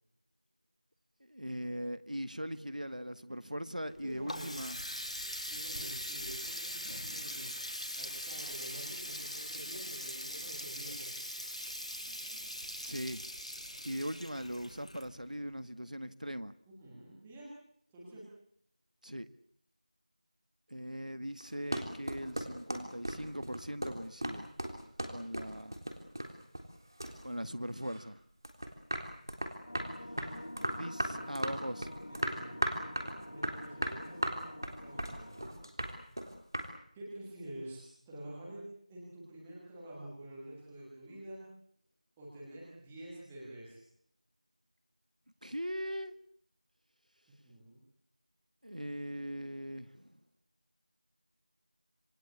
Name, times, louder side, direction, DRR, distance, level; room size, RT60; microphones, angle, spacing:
voice 1, 1.2-4.8 12.8-13.2 13.8-16.5 19.0-19.3 20.7-24.5 25.1-25.8 27.2-28.2 30.7-31.9 45.4-46.1 48.6-50.2, equal, 80° right, 1.8 m, -40 dB
Water tap faucet, 3.8-15.5, equal, 60° left, 3.0 m, -41 dB
voice 2, 3.8-4.6 5.5-7.5 8.0-11.1 16.7-17.5 17.9-18.3 31.0-31.3 32.1-32.8 33.3-35.7 36.9-41.4 42.2-43.8 47.4-47.8, right 1 dB, ahead, 1.5 m, -48 dB
sound 1, 21.4-26.8 27.0-28.1 28.4-36.7, right 1 dB, 30° right, 3.5 m, -36 dB
sound 2, 29.7-35.5, left 1 dB, 40° left, 2.0 m, -47 dB
27.5 x 21.0 x 8.6 m
figure-of-eight pair, 175°, 4 cm